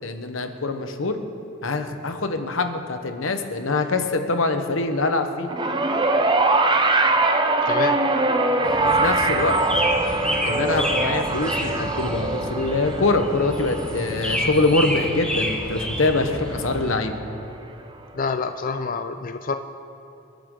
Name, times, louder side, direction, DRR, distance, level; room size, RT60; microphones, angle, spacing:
voice 1, 0.0-1.2 1.6-5.5 8.8-9.6 10.4-17.1, left 3 dB, 90° left, 7 dB, 1.2 m, -24 dB
sound 1, 5.5-15.9 17.0-17.1, right 2 dB, 25° right, 0.7 m, -23 dB
voice 2, 7.6-8.0 18.1-19.5, left 4 dB, 45° left, 8 dB, 0.5 m, -27 dB
sound 2, 8.6-17.0, equal, 5° left, 1.6 m, -29 dB
27.5 x 10.5 x 3.9 m, 2.8 s
head